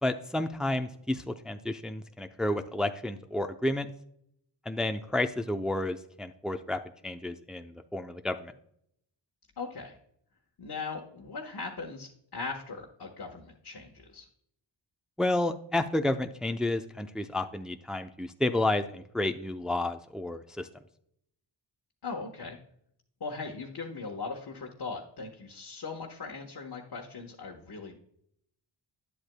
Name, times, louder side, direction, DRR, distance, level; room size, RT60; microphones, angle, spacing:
voice 1, 0.0-3.9 4.7-8.5 15.2-20.7, left 1 dB, ahead, 7 dB, 0.6 m, -31 dB
voice 2, 9.6-10.0 10.6-14.3 22.0-22.6 23.2-28.0, left 4 dB, 50° left, -1 dB, 1.3 m, -39 dB
10.0 x 7.8 x 2.3 m, 0.69 s
cardioid pair, 50°, 49 cm